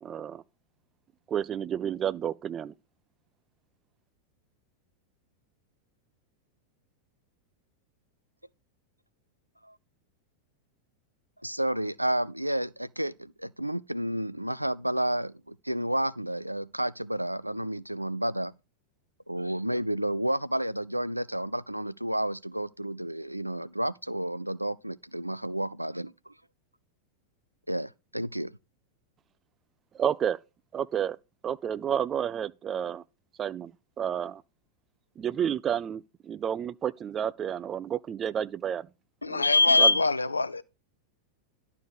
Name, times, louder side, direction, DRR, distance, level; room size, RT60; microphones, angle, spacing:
voice 1, 0.0-0.4 1.3-2.7 29.9-30.4 30.7-31.2 31.4-33.0 33.4-33.7 34.0-34.4 35.2-38.9 39.3-39.4 39.8-40.0, right 9 dB, 25° right, 0.4 m, -30 dB
voice 2, 11.4-18.5 19.3-26.3 27.7-28.5, right 1 dB, 90° right, 0.4 m, -31 dB
voice 3, 39.2-40.6, left 3 dB, 80° left, 0.5 m, -22 dB
11.0 x 4.8 x 5.1 m
figure-of-eight pair, 90°, 0 cm